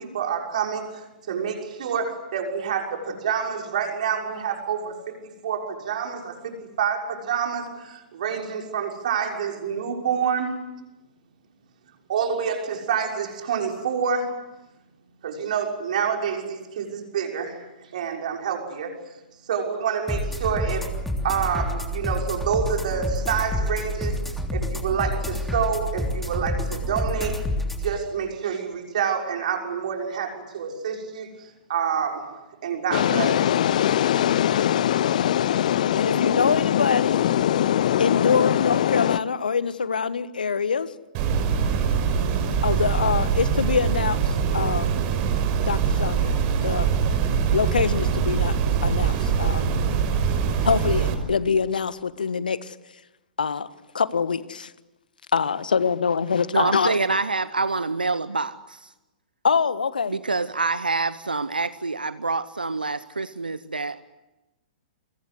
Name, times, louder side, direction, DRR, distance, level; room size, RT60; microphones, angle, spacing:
voice 1, 0.0-5.1 5.4-10.6 12.1-14.4 15.2-17.6 17.9-18.9 19.5-21.0 21.2-24.2 24.5-27.5 27.8-33.6, right 7 dB, 55° right, 2 dB, 6.2 m, -27 dB
sound 1, 20.1-27.9, left 1 dB, 5° left, 3.2 m, -28 dB
sound 2, 32.9-39.2, left 11 dB, 55° left, 0.9 m, -22 dB
voice 2, 36.0-37.2 38.0-40.9 42.6-44.2 44.5-44.9 45.6-46.9 47.5-48.5 48.8-49.7 50.6-52.8 53.4-53.7 53.9-54.7 55.3-57.0 59.4-60.2, left 6 dB, 70° left, 15 dB, 1.4 m, -24 dB
sound 3, 41.1-51.1, right 7 dB, 40° right, 5.7 m, -23 dB
voice 3, 56.5-58.9 60.1-64.0, right 3 dB, 80° right, 15 dB, 0.9 m, -26 dB
29.5 x 24.0 x 8.2 m, 1.0 s
figure-of-eight pair, 110°, 5 cm